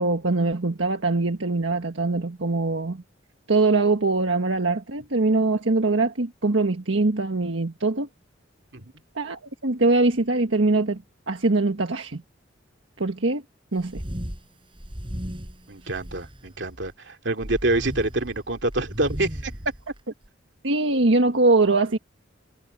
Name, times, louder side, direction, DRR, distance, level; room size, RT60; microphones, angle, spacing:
voice 1, 0.0-3.0 3.5-8.1 9.1-12.2 13.0-13.4 13.7-14.0 20.6-22.0, right 3 dB, 85° right, 1.5 m, -22 dB
sound 1, 13.8-14.4 14.7-16.9 17.4-20.3, equal, 30° right, 4.3 m, -36 dB
voice 2, 15.7-19.5, right 2 dB, 65° right, 2.6 m, -26 dB
head